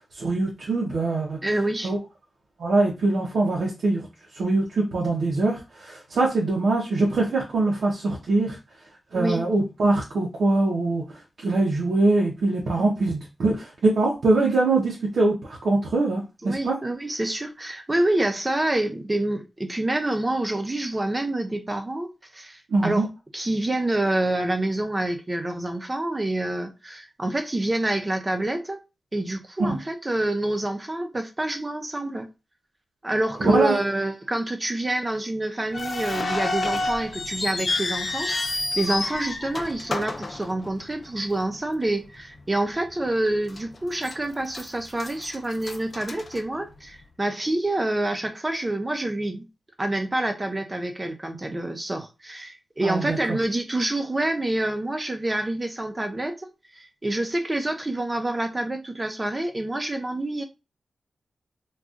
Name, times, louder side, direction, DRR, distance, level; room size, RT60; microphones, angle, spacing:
voice 1, 0.1-1.4 1.8-2.0 2.6-4.1 4.3-8.6 9.1-11.0 11.4-16.8 22.7-23.1 29.7-29.8 33.4-33.8 52.8-53.4, right 2 dB, 80° right, 0.7 m, -23 dB
voice 2, 1.4-1.9 9.1-9.4 16.4-23.1 23.3-28.8 29.1-32.3 33.0-49.5 49.8-60.4, right 1 dB, 20° right, 0.5 m, -27 dB
sound 1, 35.7-41.1 41.3-41.4 42.2-42.4 42.9-43.0 43.6-44.2 44.5-47.0, left 2 dB, 40° left, 0.4 m, -29 dB
3.9 x 2.3 x 2.4 m
wide cardioid pair, 165°, 0 cm